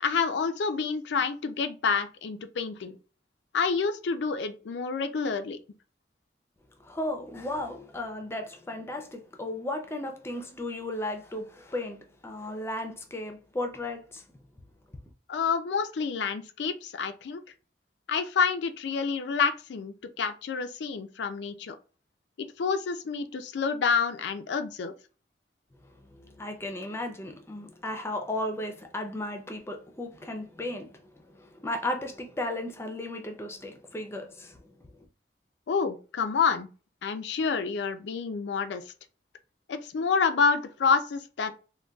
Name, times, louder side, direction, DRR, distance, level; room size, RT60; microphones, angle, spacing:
voice 1, 0.0-3.0 3.5-5.6 15.3-17.4 18.1-21.8 22.4-24.9 35.7-36.7 37.0-38.8 39.7-41.5, left 5 dB, 85° left, 0.4 m, -28 dB
voice 2, 6.8-12.0 12.2-14.2 26.0-34.7, left 1 dB, 15° left, 0.4 m, -35 dB
3.7 x 2.2 x 2.2 m
head